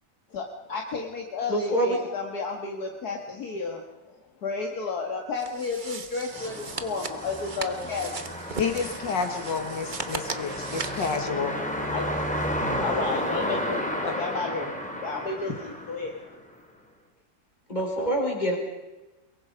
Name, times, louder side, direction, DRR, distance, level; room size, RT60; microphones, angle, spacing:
voice 1, 0.3-8.5 11.9-16.4, left 4 dB, 60° left, 1 dB, 2.2 m, -33 dB
voice 2, 1.5-2.0 17.7-18.5, right 1 dB, 25° left, 0 dB, 5.1 m, -25 dB
sound 1, 5.4-11.2, right 4 dB, 30° right, 1.1 m, -38 dB
sound 2, 6.3-16.6, equal, 5° left, 2.8 m, -32 dB
voice 3, 8.6-11.5 14.1-14.2, left 5 dB, 90° left, 5 dB, 2.3 m, -29 dB
23.0 x 22.5 x 5.1 m, 1.1 s
omnidirectional pair, 1.9 m